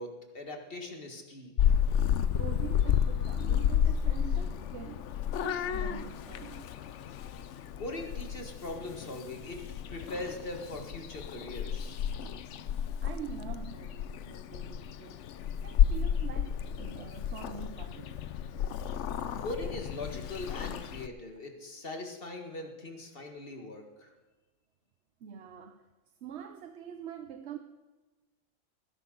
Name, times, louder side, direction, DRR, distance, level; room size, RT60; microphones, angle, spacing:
voice 1, 0.0-1.5 7.7-9.6 9.9-12.0 19.4-24.1, left 2 dB, 45° left, 2.0 m, -41 dB
Purr / Meow, 1.6-21.1, left 9 dB, 70° left, 0.9 m, -31 dB
voice 2, 2.4-5.2 5.4-6.7 13.0-15.2 15.6-18.2 25.2-25.9 26.2-27.6, right 8 dB, 65° right, 1.0 m, -44 dB
19.5 x 11.0 x 3.9 m
omnidirectional pair, 1.3 m